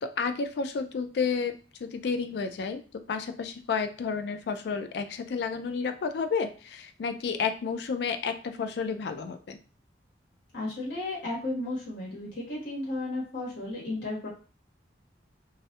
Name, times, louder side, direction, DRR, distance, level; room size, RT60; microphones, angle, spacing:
voice 1, 0.0-1.5 1.8-9.6, left 5 dB, 60° left, 8 dB, 0.3 m, -31 dB
voice 2, 10.5-14.3, left 2 dB, 75° left, -5 dB, 1.0 m, -34 dB
2.3 x 2.1 x 2.7 m, 0.37 s
head